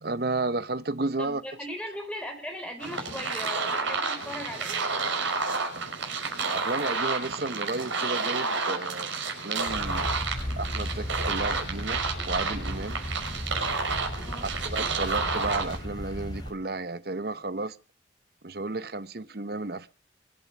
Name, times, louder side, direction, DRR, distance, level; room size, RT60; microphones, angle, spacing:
voice 1, 0.0-1.4 6.5-9.1 9.4-10.1 10.6-13.0 14.4-17.8 18.4-19.9, right 3 dB, 55° right, 0.9 m, -32 dB
voice 2, 1.2-4.9 14.2-14.5, left 1 dB, 5° left, 4.2 m, -38 dB
sound 1, 2.8-15.8, right 4 dB, 85° right, 5.9 m, -30 dB
sound 2, 9.7-16.5, equal, 20° left, 4.3 m, -35 dB
24.0 x 8.8 x 6.0 m
head